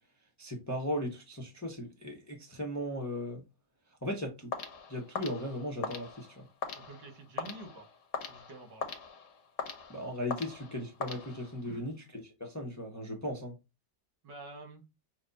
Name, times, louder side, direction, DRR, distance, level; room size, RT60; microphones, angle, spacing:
voice 1, 0.4-3.4 4.0-4.5 4.9-6.4 9.9-13.5, equal, 15° left, 0.6 m, -37 dB
sound 1, 4.5-11.8, left 5 dB, 50° left, 1.1 m, -41 dB
voice 2, 6.7-7.9 8.3-8.9 11.7-11.9 14.2-14.8, right 2 dB, 85° right, 2.1 m, -48 dB
6.0 x 2.2 x 4.0 m
omnidirectional pair, 1.9 m